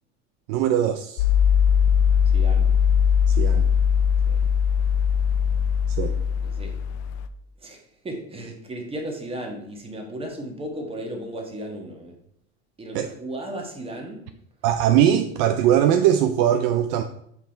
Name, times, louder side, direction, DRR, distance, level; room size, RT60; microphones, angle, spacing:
voice 1, 0.5-1.2 3.3-3.6 5.9-6.1 12.9-13.1 14.6-17.0, right 10 dB, 65° right, 7 dB, 0.6 m, -20 dB
sound 1, 1.2-7.3, left 7 dB, 65° left, 0.6 m, -20 dB
voice 2, 2.3-2.7 4.3-4.4 6.4-6.8 7.6-12.1 12.8-14.3, right 1 dB, 15° right, 2 dB, 1.4 m, -35 dB
5.6 x 4.7 x 4.5 m, 0.70 s
supercardioid pair, 130°, 32 cm